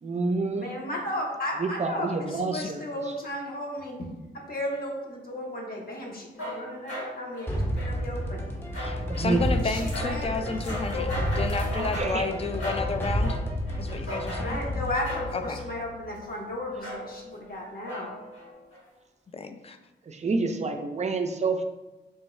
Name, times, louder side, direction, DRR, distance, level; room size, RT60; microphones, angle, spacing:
voice 1, 0.0-0.7 1.6-2.8 9.1-9.4 11.8-12.3 20.1-21.6, right 3 dB, 35° right, 6 dB, 0.4 m, -28 dB
voice 2, 0.5-4.1 4.3-8.4 9.6-11.3 14.4-18.2, left 1 dB, 50° left, -2 dB, 0.9 m, -35 dB
sound 1, 6.3-16.3 16.8-17.4 17.8-18.8, left 1 dB, 75° left, 1.4 m, -38 dB
sound 2, 7.5-16.3, equal, 10° left, 0.7 m, -31 dB
voice 3, 8.8-11.1 11.4-13.4 13.8-14.6 15.3-15.6 19.3-19.8, left 4 dB, 30° left, 7 dB, 0.4 m, -31 dB
sound 3, 9.2-12.1, left 1 dB, 90° left, 0.8 m, -43 dB
3.4 x 2.2 x 3.0 m, 1.0 s
supercardioid pair, 40°, 20 cm